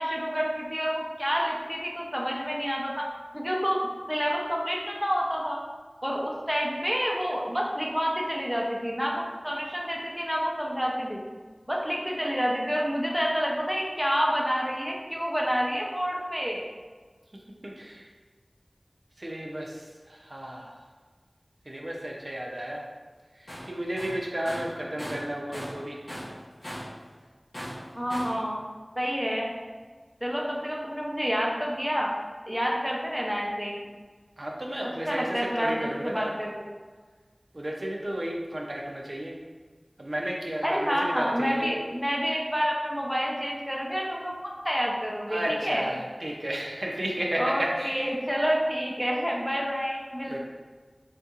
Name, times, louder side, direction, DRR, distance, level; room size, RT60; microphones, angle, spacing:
voice 1, 0.0-3.1 3.3-5.6 6.0-11.2 11.7-16.6 27.9-28.6 29.0-29.5 30.2-32.1 32.5-33.8 35.1-36.5 40.6-45.9 47.4-50.4, equal, ahead, -2 dB, 0.5 m, -28 dB
voice 2, 17.3-18.1 19.2-20.8 21.7-22.8 23.3-26.0 34.4-36.3 37.5-39.4 40.0-41.7 45.3-48.1 50.3-50.4, right 1 dB, 55° right, -2 dB, 0.4 m, -33 dB
Tools, 23.5-23.7 24.0-25.8 26.1-27.0 27.5-28.4, equal, 80° left, 0.9 m, -38 dB
3.5 x 2.7 x 2.3 m, 1.4 s
wide cardioid pair, 45°, 0 cm